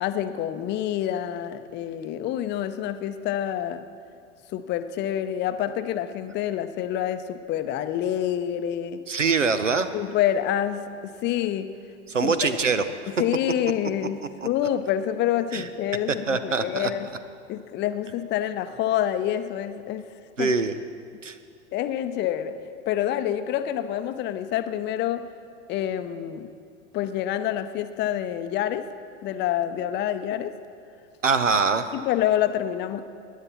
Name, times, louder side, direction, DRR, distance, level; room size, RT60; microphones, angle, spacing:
voice 1, 0.0-3.8 4.5-9.0 9.9-11.7 12.2-12.7 13.2-17.1 17.5-20.1 20.4-20.5 21.7-22.6 22.9-25.3 25.7-26.5 26.9-28.9 29.2-30.6 31.9-33.0, left 11 dB, 30° left, 11 dB, 0.6 m, -27 dB
voice 2, 9.1-9.9 12.1-12.8 14.4-14.5 15.5-15.6 16.3-16.9 20.4-20.7 21.2-21.3 31.2-31.9, right 4 dB, 90° right, 11 dB, 0.7 m, -23 dB
17.5 x 10.5 x 4.3 m, 2.4 s
figure-of-eight pair, 85°, 36 cm